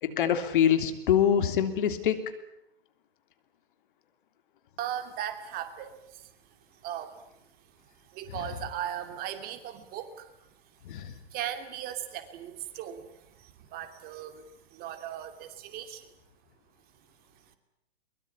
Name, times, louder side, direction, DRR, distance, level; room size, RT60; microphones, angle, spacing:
voice 1, 0.0-2.2 10.9-11.1, left 9 dB, 55° left, 9 dB, 3.2 m, -24 dB
voice 2, 4.8-6.3 6.7-7.2 8.0-10.3 11.3-16.1, right 10 dB, 30° right, 8 dB, 2.8 m, -38 dB
23.0 x 22.5 x 9.8 m, 0.81 s
hypercardioid pair, 120°, 31 cm